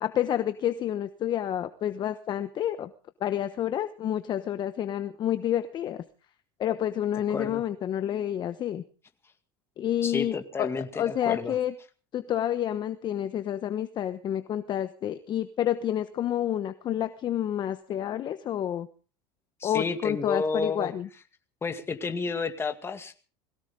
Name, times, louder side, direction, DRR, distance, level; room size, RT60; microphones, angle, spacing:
voice 1, 0.0-2.9 3.2-6.0 6.6-8.8 9.8-11.7 12.1-18.9 19.6-21.1, left 11 dB, 35° left, 11 dB, 1.0 m, -29 dB
voice 2, 7.3-7.6 10.0-11.6 19.6-20.9 21.6-23.1, left 4 dB, 20° left, 7 dB, 2.2 m, -31 dB
21.5 x 17.0 x 3.7 m, 0.39 s
supercardioid pair, 125°, 12 cm